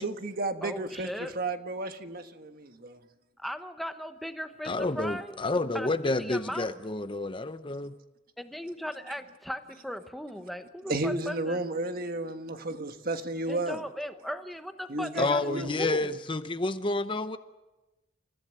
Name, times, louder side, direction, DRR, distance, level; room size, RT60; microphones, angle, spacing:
voice 1, 0.0-3.0 10.9-13.8 14.9-15.7, right 2 dB, 50° right, 1.4 m, -33 dB
voice 2, 0.6-1.3 3.4-5.4 5.7-6.8 8.4-11.6 13.5-16.2, equal, ahead, 1.0 m, -38 dB
voice 3, 4.6-7.9 15.2-17.4, left 2 dB, 25° left, 0.7 m, -29 dB
29.5 x 15.0 x 7.7 m
head